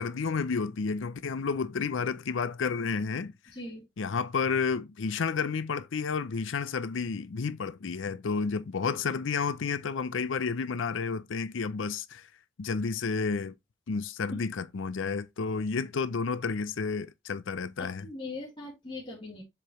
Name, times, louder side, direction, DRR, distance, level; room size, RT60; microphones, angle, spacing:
voice 1, 0.0-3.3 4.0-12.3 12.6-13.5 13.9-18.1, left 5 dB, 85° left, 0.5 m, -31 dB
voice 2, 3.5-3.8 17.8-19.4, left 2 dB, 25° left, 2.4 m, -40 dB
7.3 x 4.9 x 3.0 m
head